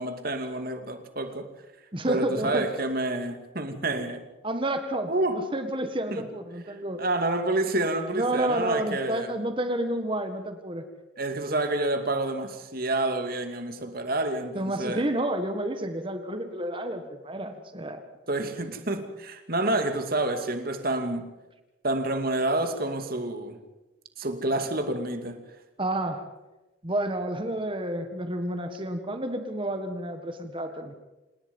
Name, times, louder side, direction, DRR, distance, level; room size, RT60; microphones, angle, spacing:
voice 1, 0.0-1.5 2.0-4.2 5.1-5.4 6.1-6.2 7.0-9.3 11.2-15.0 18.3-21.3 21.8-23.6 24.2-25.4, right 2 dB, 50° right, 7 dB, 2.4 m, -28 dB
voice 2, 1.9-2.7 4.4-7.0 8.1-10.9 14.5-18.0 25.8-26.2 26.8-30.9, right 1 dB, 25° right, 7 dB, 1.6 m, -30 dB
27.5 x 19.0 x 5.5 m, 1.1 s
head